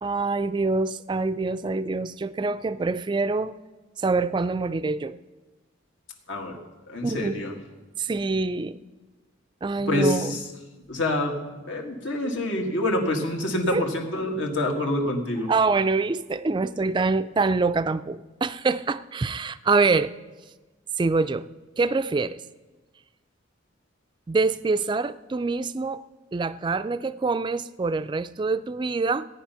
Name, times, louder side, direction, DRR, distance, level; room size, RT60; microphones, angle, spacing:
voice 1, 0.0-3.5 4.0-5.2 7.0-7.4 8.0-8.8 9.6-10.4 13.7-13.8 15.5-20.1 21.0-21.5 21.8-22.4 24.3-26.0 26.3-29.3, right 3 dB, 25° right, 14 dB, 0.3 m, -25 dB
voice 2, 6.9-7.5 9.9-10.4 10.9-11.4 11.7-15.5, left 1 dB, 75° left, 2 dB, 1.9 m, -26 dB
16.5 x 9.5 x 5.7 m, 1.2 s
head